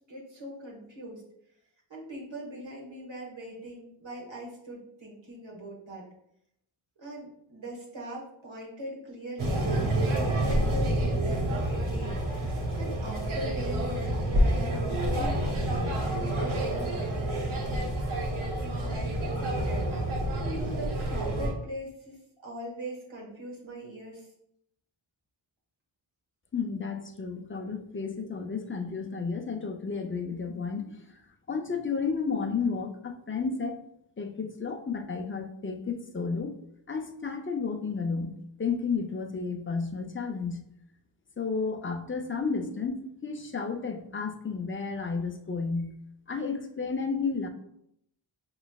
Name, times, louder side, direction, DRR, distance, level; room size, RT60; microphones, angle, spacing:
voice 1, 0.1-1.2 1.9-6.1 7.0-17.9 18.6-19.9 20.3-24.3, right 1 dB, 65° right, -3 dB, 1.4 m, -41 dB
sound 1, 9.4-21.5, right 1 dB, 80° right, 0.8 m, -28 dB
voice 2, 26.5-31.0 31.5-33.8 34.2-36.6 36.9-38.3 38.6-40.6 41.4-45.9 46.3-47.5, left 5 dB, 25° left, 5 dB, 0.5 m, -32 dB
5.0 x 3.1 x 2.3 m, 0.74 s
wide cardioid pair, 80°, 49 cm